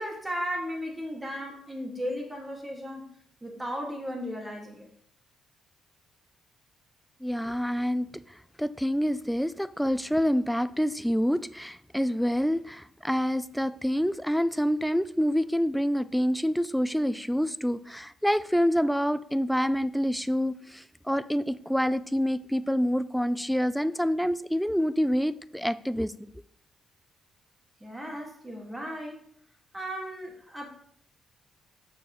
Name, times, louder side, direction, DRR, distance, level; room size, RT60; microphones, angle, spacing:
voice 1, 0.0-3.1 3.4-4.9 27.8-29.3 29.7-30.7, equal, 15° right, 0 dB, 2.0 m, -35 dB
voice 2, 7.2-8.1 8.6-26.1, equal, ahead, 14 dB, 0.3 m, -27 dB
6.9 x 5.8 x 3.1 m, 0.65 s
cardioid pair, 90°, 0 cm